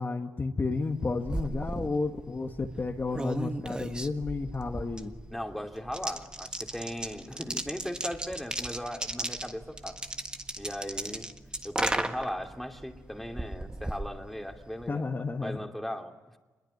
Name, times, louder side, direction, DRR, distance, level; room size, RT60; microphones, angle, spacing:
voice 1, 0.0-5.1 14.9-15.6, left 3 dB, 35° left, 3 dB, 1.7 m, -32 dB
sound 1, 0.8-14.9, right 1 dB, 15° right, 1.5 m, -36 dB
voice 2, 5.3-10.0 10.6-11.3 11.6-15.1 15.4-16.4, equal, ahead, 3 dB, 2.9 m, -38 dB
27.0 x 22.0 x 9.4 m, 1.2 s
cardioid pair, 95°, 6 cm